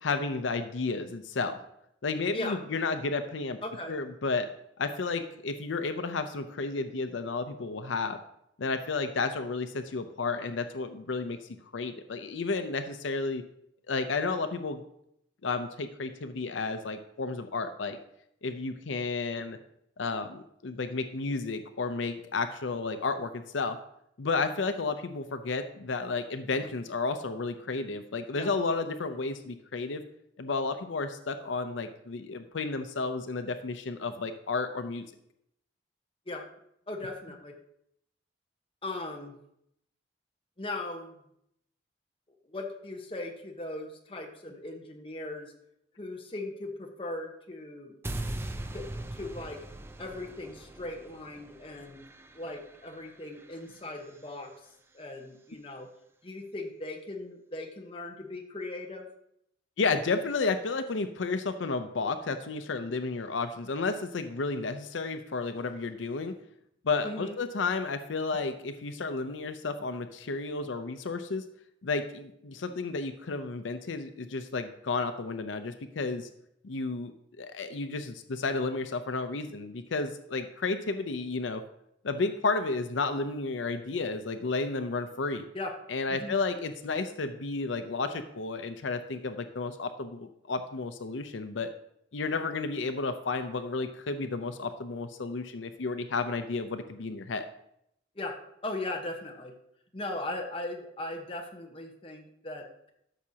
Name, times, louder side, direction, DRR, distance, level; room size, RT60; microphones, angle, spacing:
voice 1, 0.0-1.6 2.0-3.6 3.9-4.5 4.8-8.2 8.6-11.4 11.7-13.4 13.9-14.8 15.4-18.0 18.4-19.6 20.0-23.8 24.2-30.0 30.4-35.1 59.8-66.3 66.8-71.4 71.8-76.3 76.6-77.1 77.4-81.6 82.0-85.4 85.9-91.7 92.1-97.5, left 3 dB, 85° left, 8 dB, 0.6 m, -32 dB
voice 2, 3.6-3.9 28.3-28.5 36.3-36.5 36.9-37.6 38.8-39.4 40.6-41.2 42.4-45.5 46.0-48.0 48.7-48.8 49.1-49.6 50.0-52.0 52.3-54.5 54.9-55.9 56.2-59.1 67.0-67.4 85.5-85.7 86.1-86.3 98.1-99.5 99.9-102.9, left 2 dB, 30° left, 2 dB, 1.1 m, -38 dB
sound 1, 48.0-54.2, right 1 dB, 15° right, 0.4 m, -41 dB
13.0 x 6.2 x 2.8 m, 0.75 s
head